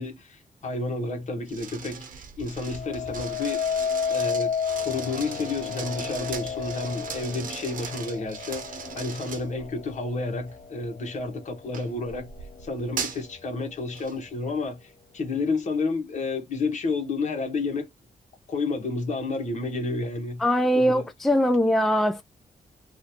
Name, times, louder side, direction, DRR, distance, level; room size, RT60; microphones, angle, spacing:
voice 1, 0.0-2.1 2.4-3.8 4.1-4.5 4.8-12.3 12.6-17.9 18.5-20.4 20.7-21.1, left 3 dB, 55° left, 1.3 m, -30 dB
sound 1, 1.5-9.9 10.5-10.8 11.7-13.3 13.9-14.2, right 6 dB, 75° right, 0.9 m, -38 dB
sound 2, 2.6-11.8 12.3-12.8, left 7 dB, 80° left, 0.7 m, -32 dB
voice 2, 20.4-22.2, equal, ahead, 0.3 m, -21 dB
3.0 x 2.5 x 2.8 m
cardioid pair, 110°, 14 cm